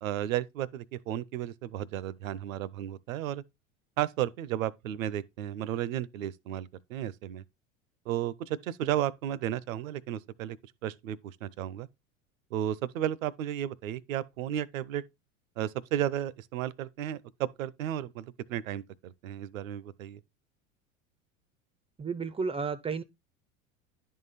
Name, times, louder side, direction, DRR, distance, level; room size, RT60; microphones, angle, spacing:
voice 1, 0.0-3.4 4.0-7.4 8.1-10.6 10.8-11.9 12.5-15.0 15.6-20.2, right 11 dB, 70° right, 0.6 m, -33 dB
voice 2, 22.0-23.0, right 5 dB, 15° right, 0.5 m, -32 dB
10.5 x 3.8 x 4.1 m
hypercardioid pair, 80°, 41 cm